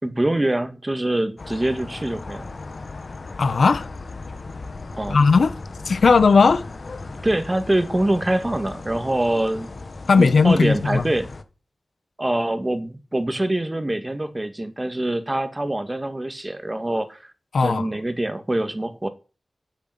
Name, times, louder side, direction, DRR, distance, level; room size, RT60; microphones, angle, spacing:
voice 1, 0.0-2.5 5.0-5.2 7.2-9.7 10.2-11.3 12.2-17.2 17.6-19.1, right 1 dB, 20° right, 2.0 m, -24 dB
sound 1, 1.4-11.4, left 3 dB, 55° left, 1.6 m, -37 dB
voice 2, 3.4-3.9 5.1-5.5 5.8-6.6 10.1-11.0 17.5-17.8, left 4 dB, 80° left, 1.2 m, -16 dB
9.5 x 9.2 x 9.5 m
wide cardioid pair, 75°, 0 cm